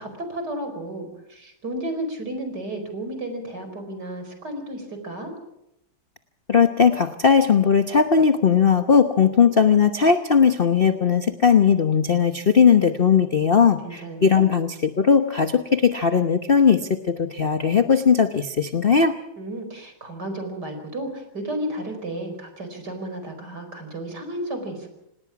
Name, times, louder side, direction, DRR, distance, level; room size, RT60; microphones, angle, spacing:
voice 1, 0.0-5.3 13.8-14.4 19.4-24.9, right 1 dB, 50° right, 7 dB, 5.3 m, -33 dB
voice 2, 6.5-14.7 15.0-16.8 17.1-19.1, left 6 dB, 40° left, 8 dB, 0.9 m, -18 dB
26.0 x 19.5 x 6.0 m, 0.85 s
omnidirectional pair, 2.3 m